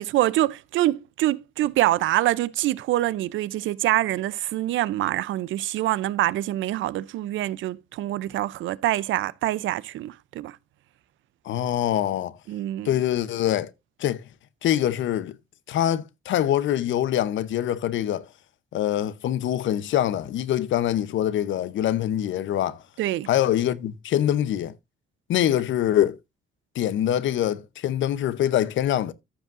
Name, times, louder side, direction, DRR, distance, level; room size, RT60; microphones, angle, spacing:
voice 1, 0.0-10.6 12.5-13.0 23.0-23.3, right 15 dB, 80° right, 0.5 m, -25 dB
voice 2, 11.4-12.4 12.8-13.7 14.0-14.2 14.6-15.4 15.7-18.3 18.7-22.8 23.3-24.7 25.3-26.2 26.8-29.1, left 11 dB, 70° left, 0.7 m, -24 dB
14.5 x 5.4 x 2.5 m
cardioid pair, 90°, 20 cm